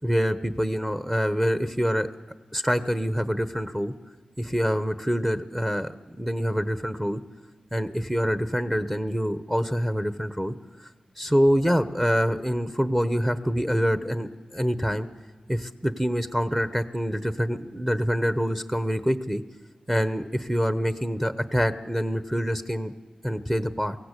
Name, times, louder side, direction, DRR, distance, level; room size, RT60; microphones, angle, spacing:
voice 1, 0.0-2.1 2.5-3.9 4.4-7.2 7.7-10.5 11.2-15.1 15.5-19.4 19.9-22.9 23.2-24.0, equal, 10° right, 10 dB, 1.1 m, -25 dB
23.0 x 16.5 x 8.4 m, 1.3 s
cardioid pair, 60°, 2 cm